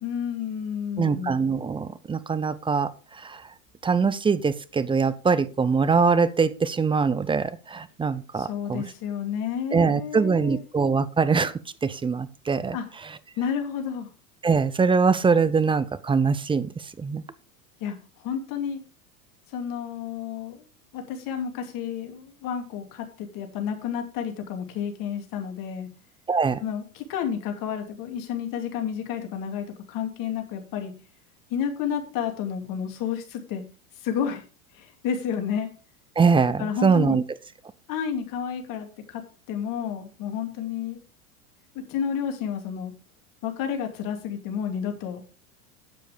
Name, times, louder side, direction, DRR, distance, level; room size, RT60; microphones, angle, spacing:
voice 1, 0.0-1.4 8.4-10.6 12.7-12.8 13.4-14.1 17.8-18.8 19.5-20.6 20.9-25.9 26.6-30.9 31.5-33.6 34.0-34.4 34.7-35.7 36.6-37.2 37.9-39.2 39.5-41.0 41.7-42.9 43.4-45.2, left 8 dB, 50° left, 5 dB, 2.7 m, -31 dB
voice 2, 1.0-2.9 3.2-3.4 3.8-8.8 9.7-11.5 11.8-12.8 14.4-17.2 26.3-26.6 36.2-37.2, right 5 dB, 10° right, 15 dB, 0.6 m, -23 dB
9.0 x 7.5 x 5.0 m, 0.34 s
hypercardioid pair, 100°, 43 cm